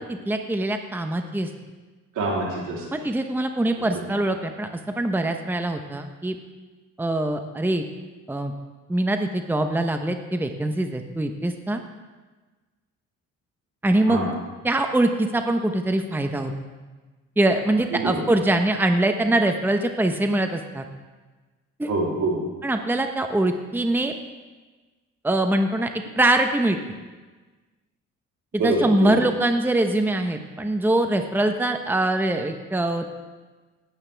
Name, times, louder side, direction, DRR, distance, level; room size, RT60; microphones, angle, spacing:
voice 1, 0.1-1.5 2.9-6.4 7.0-7.8 8.3-8.5 8.9-11.8 13.8-14.2 14.6-16.5 17.4-20.8 21.8-21.9 22.6-24.1 25.2-25.9 26.2-26.8 28.6-33.1, right 1 dB, 5° right, 6 dB, 0.9 m, -23 dB
voice 2, 2.2-2.8 14.1-14.3 18.0-18.1 21.9-22.4 28.6-29.2, right 2 dB, 80° right, -3 dB, 3.3 m, -25 dB
18.5 x 8.3 x 3.4 m, 1.3 s
cardioid pair, 90°, 30 cm